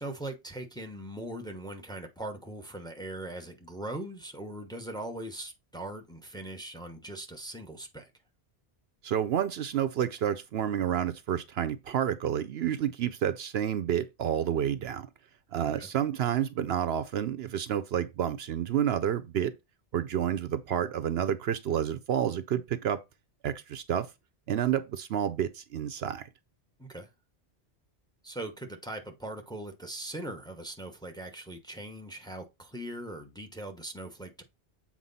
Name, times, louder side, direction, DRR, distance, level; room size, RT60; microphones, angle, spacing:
voice 1, 0.0-8.1 15.8-15.9 26.8-27.1 28.2-34.4, right 1 dB, 5° left, 1.0 m, -40 dB
voice 2, 9.0-15.1 15.5-19.5 19.9-23.0 23.4-24.1 24.5-26.3, right 9 dB, 70° right, 0.8 m, -29 dB
7.5 x 4.4 x 4.1 m
omnidirectional pair, 1.1 m